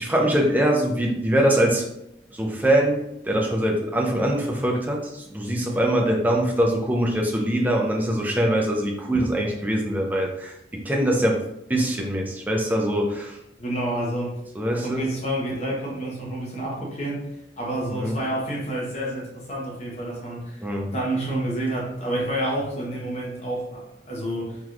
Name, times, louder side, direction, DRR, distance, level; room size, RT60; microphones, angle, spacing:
voice 1, 0.0-1.9 2.3-11.4 11.7-13.4 14.6-15.1 17.9-18.2 20.6-20.9, right 1 dB, 10° right, 0 dB, 0.4 m, -23 dB
voice 2, 13.6-14.4 14.8-17.2 17.6-20.7 20.9-24.6, right 1 dB, 40° left, -3 dB, 0.9 m, -29 dB
3.4 x 2.9 x 2.4 m, 0.82 s
head